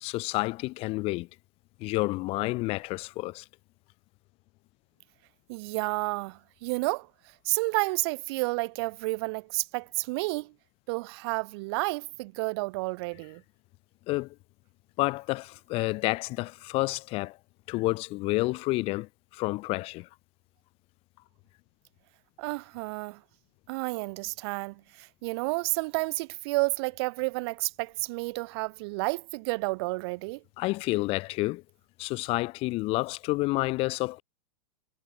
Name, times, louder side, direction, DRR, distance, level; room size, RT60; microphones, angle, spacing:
voice 1, 0.0-1.3 1.8-3.4 14.1-14.3 15.0-17.4 17.7-20.1 30.6-31.6 32.0-34.2, left 21 dB, 35° left, 0.5 m, -29 dB
voice 2, 5.5-7.1 7.4-10.5 10.9-13.4 22.4-23.2 23.7-30.4, right 25 dB, 50° right, 1.1 m, -31 dB
hypercardioid pair, 115°, 16 cm